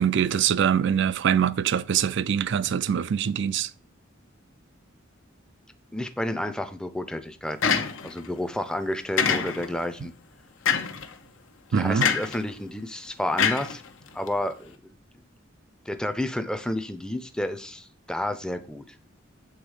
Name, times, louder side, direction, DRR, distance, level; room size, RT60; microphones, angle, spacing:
voice 1, 0.0-3.7 11.7-12.1, right 8 dB, 65° right, 0.4 m, -23 dB
voice 2, 5.9-7.7 8.0-10.1 11.7-13.8 14.1-15.0 15.9-18.8, left 1 dB, 5° left, 0.5 m, -30 dB
sound 1, 7.6-8.3 9.2-9.8 10.7-11.1 12.0-12.4 13.4-14.3, left 6 dB, 80° left, 0.8 m, -25 dB
8.0 x 3.6 x 4.8 m
head